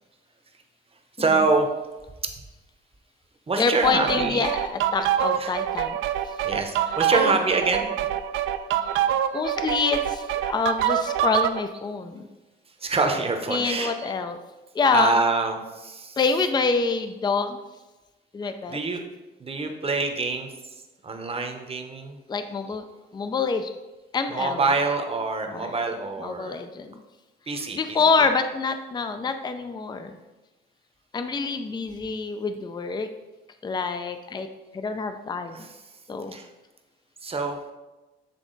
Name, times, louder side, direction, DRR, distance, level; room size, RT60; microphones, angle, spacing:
voice 1, 1.2-1.7 3.5-4.5 5.4-5.5 6.4-7.8 12.8-14.1 14.9-16.2 18.4-19.0 19.4-20.5 21.0-22.2 24.3-26.6 27.5-28.0 35.5-35.7 36.3-36.5 37.2-37.6, right 3 dB, 30° right, 4 dB, 0.9 m, -25 dB
voice 2, 3.6-6.0 7.1-7.4 9.3-12.3 13.5-14.4 14.7-15.2 16.2-17.6 18.3-18.8 22.3-22.8 23.1-23.7 24.1-24.6 25.5-25.8 26.2-27.0 27.8-30.1 31.1-33.1 33.6-34.5 34.7-35.7 36.1-36.4, left 4 dB, 20° left, 8 dB, 0.4 m, -26 dB
sound 1, 3.8-11.6, right 10 dB, 80° right, 0.4 m, -25 dB
8.3 x 3.5 x 3.9 m, 1.1 s
cardioid pair, 90°, 20 cm